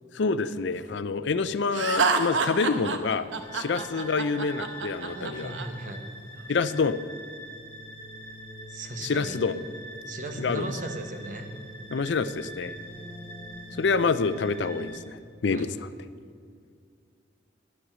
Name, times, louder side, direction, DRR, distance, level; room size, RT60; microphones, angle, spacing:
voice 1, 0.1-3.3 3.5-5.5 6.5-7.0 9.0-9.6 10.4-10.7 11.9-12.7 13.8-15.9, left 4 dB, 75° left, 14 dB, 0.5 m, -27 dB
Laughter, 1.7-5.7, right 4 dB, 85° right, 1.0 m, -27 dB
sound 1, 3.4-15.0, equal, 20° left, 2.3 m, -43 dB
voice 2, 5.1-6.0 8.7-9.4 10.1-11.5 15.5-15.7, right 1 dB, 45° right, 5 dB, 1.1 m, -37 dB
11.0 x 10.0 x 6.1 m, 2.2 s
head